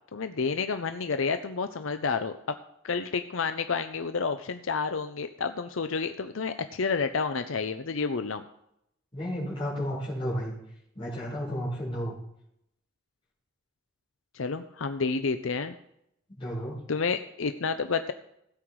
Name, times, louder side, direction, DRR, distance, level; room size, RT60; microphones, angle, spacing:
voice 1, 0.1-2.6 2.8-8.4 14.3-15.7 16.9-18.1, left 5 dB, 75° left, 9 dB, 0.6 m, -30 dB
voice 2, 9.1-10.5 11.0-12.1 16.4-16.8, equal, 25° left, -6 dB, 5.6 m, -32 dB
16.5 x 7.8 x 4.7 m, 0.77 s
head